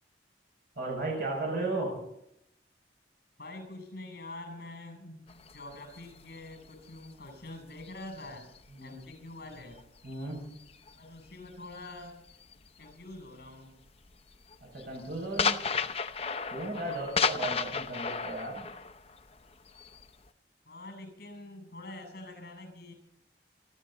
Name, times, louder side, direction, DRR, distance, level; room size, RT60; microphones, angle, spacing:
voice 1, 0.8-2.0 8.7-9.0 10.0-10.4 14.7-15.6 16.5-18.7, right 2 dB, 55° right, -1 dB, 6.4 m, -35 dB
voice 2, 3.4-8.5 8.8-9.8 11.0-12.2 12.8-13.7 16.8-17.2 20.7-22.9, left 2 dB, 55° left, 6 dB, 7.6 m, -45 dB
sound 1, 5.3-9.1 9.5-12.9 13.2-13.5 13.9-20.3, left 5 dB, 35° left, 0.7 m, -34 dB
27.5 x 12.0 x 4.1 m, 0.77 s
head